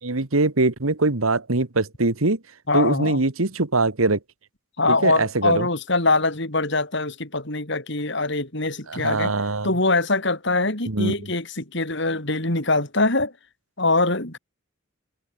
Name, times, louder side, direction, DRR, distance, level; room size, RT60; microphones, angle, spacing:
voice 1, 0.0-2.4 2.7-4.2 4.9-5.7 8.9-9.7 10.9-11.3, right 2 dB, 80° right, 1.7 m, -22 dB
voice 2, 2.7-3.2 4.8-9.3 9.6-13.3 13.8-14.4, left 2 dB, 55° left, 4.2 m, -23 dB
head